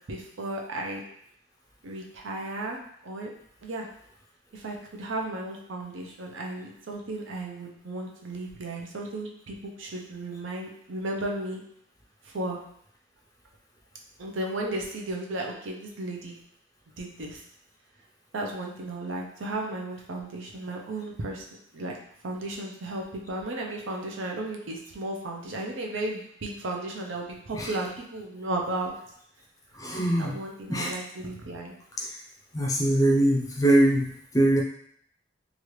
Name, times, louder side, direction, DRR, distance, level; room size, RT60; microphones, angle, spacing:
voice 1, 0.1-1.0 1.8-2.8 3.0-3.3 3.6-3.9 4.5-11.6 12.2-12.6 14.2-16.3 17.0-17.4 18.3-21.4 21.7-21.9 22.2-28.9 30.2-31.7, right 2 dB, 85° right, 0 dB, 0.6 m, -34 dB
voice 2, 29.8-30.4 30.7-30.9 32.5-34.6, right 1 dB, 20° left, -1 dB, 0.4 m, -22 dB
3.1 x 2.4 x 3.1 m, 0.67 s
head